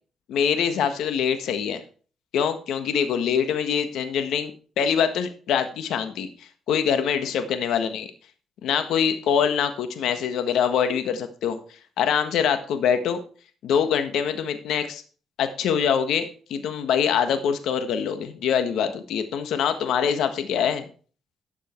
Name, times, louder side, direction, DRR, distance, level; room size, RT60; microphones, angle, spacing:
voice 1, 0.3-1.8 2.3-4.5 4.8-8.1 8.6-11.6 12.0-13.2 13.6-15.0 15.4-20.9, left 7 dB, 80° left, 9 dB, 1.6 m, -24 dB
13.0 x 7.6 x 4.6 m, 0.40 s
cardioid pair, 90°, 0 cm